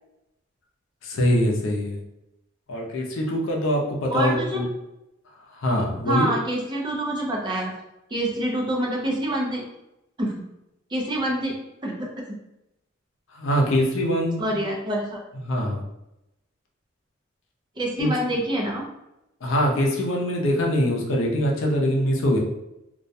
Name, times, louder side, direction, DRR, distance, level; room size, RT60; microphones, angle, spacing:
voice 1, 1.0-2.0 2.7-4.6 5.5-6.3 13.3-14.6 15.4-15.8 18.0-18.1 19.4-22.4, equal, 80° left, -1 dB, 0.5 m, -23 dB
voice 2, 4.1-4.6 6.1-7.7 8.1-9.6 10.2-10.3 10.9-11.6 11.8-12.1 14.4-15.2 17.8-18.9, right 1 dB, 20° right, -2 dB, 0.4 m, -26 dB
2.3 x 2.1 x 2.6 m, 0.88 s
head